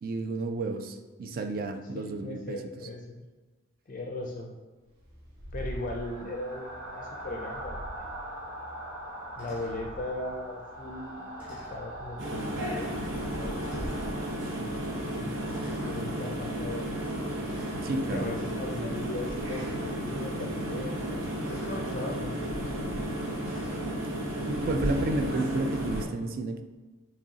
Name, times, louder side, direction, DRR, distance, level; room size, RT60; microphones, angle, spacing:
voice 1, 0.0-2.6 17.8-18.3 24.5-26.6, right 2 dB, 45° right, 7 dB, 0.3 m, -31 dB
voice 2, 1.9-3.2 3.9-4.5 5.5-8.2 9.3-13.6 14.7-15.5 15.8-16.9 18.1-21.1 21.4-23.1, left 2 dB, 40° left, 1 dB, 0.4 m, -38 dB
sound 1, 4.9-14.9, right 1 dB, 85° right, 1.2 m, -41 dB
sound 2, 7.2-7.4 9.4-9.9 11.4-11.9 12.8-12.9 13.6-14.1 15.5-16.0 17.5-18.0 19.4-19.9 21.4-21.9 23.4-23.9, equal, 10° right, 1.4 m, -48 dB
sound 3, 12.2-26.0, right 1 dB, 65° right, 0.8 m, -33 dB
6.3 x 3.1 x 2.8 m, 1.2 s
head